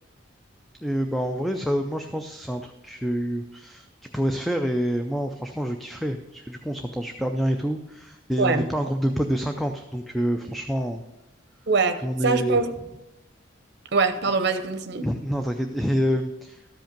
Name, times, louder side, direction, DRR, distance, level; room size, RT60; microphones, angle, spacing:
voice 1, 0.8-3.9 4.1-11.0 12.0-12.6 15.0-16.7, equal, ahead, 5 dB, 0.4 m, -27 dB
voice 2, 11.7-12.7 13.9-15.1, right 4 dB, 55° right, 9 dB, 0.8 m, -23 dB
13.0 x 5.2 x 5.2 m, 0.98 s
head